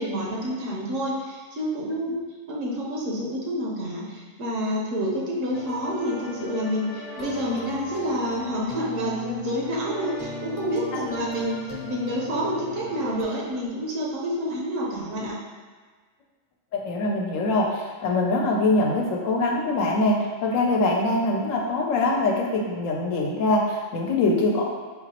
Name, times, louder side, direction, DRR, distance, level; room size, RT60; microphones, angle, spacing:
voice 1, 0.0-15.4, equal, 80° right, -3 dB, 1.1 m, -28 dB
sound 1, 5.5-13.2, left 3 dB, 50° left, 0.7 m, -37 dB
voice 2, 16.7-24.7, left 2 dB, 90° left, 0 dB, 1.0 m, -23 dB
3.9 x 2.9 x 2.8 m, 1.5 s
omnidirectional pair, 1.3 m